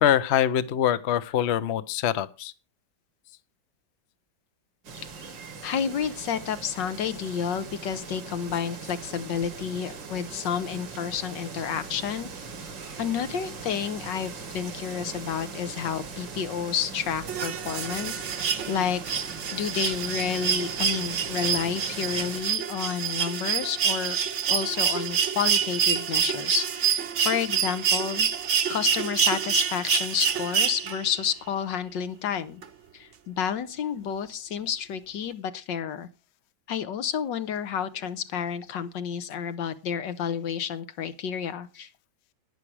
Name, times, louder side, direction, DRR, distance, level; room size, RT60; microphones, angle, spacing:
voice 1, 0.0-2.5, left 10 dB, 55° left, 15 dB, 0.8 m, -24 dB
sound 1, 4.8-22.4, right 5 dB, 90° right, 2.7 m, -40 dB
voice 2, 5.6-12.3 13.0-24.2 24.5-28.3 28.7-32.6 32.9-36.1 36.7-41.9, left 8 dB, 80° left, 12 dB, 1.7 m, -30 dB
sound 2, 17.3-31.2 32.6-32.7, right 7 dB, 50° right, 1.0 m, -27 dB
11.5 x 10.0 x 4.7 m, 0.29 s
omnidirectional pair, 2.0 m